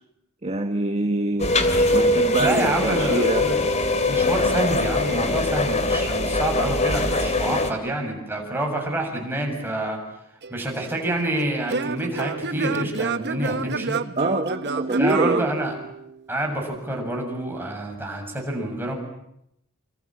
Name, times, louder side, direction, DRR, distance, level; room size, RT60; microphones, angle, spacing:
voice 1, 0.4-1.5 1.9-3.5 14.2-15.5, right 1 dB, 30° right, 5 dB, 1.6 m, -25 dB
sound 1, 1.4-7.7, left 2 dB, 30° left, 2.6 m, -22 dB
voice 2, 2.4-3.5 4.0-10.0 10.5-14.0 15.0-15.7 16.3-18.9, right 1 dB, 10° right, 1 dB, 7.3 m, -27 dB
Singing / Plucked string instrument, 10.4-16.3, right 4 dB, 50° right, 1.0 m, -29 dB
28.0 x 26.5 x 7.6 m, 0.77 s
head